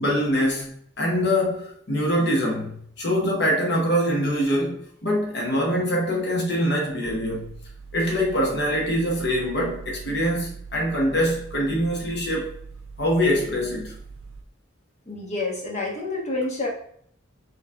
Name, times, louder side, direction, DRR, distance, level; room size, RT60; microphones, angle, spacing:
voice 1, 0.0-7.6 7.9-12.6 13.0-14.0, equal, 60° left, 0.9 m, -24 dB
sound 1, 7.0-14.4, right 4 dB, 85° right, 0.5 m, -42 dB
voice 2, 15.1-16.7, left 2 dB, 35° left, 1.1 m, -28 dB
5.6 x 3.1 x 2.4 m
head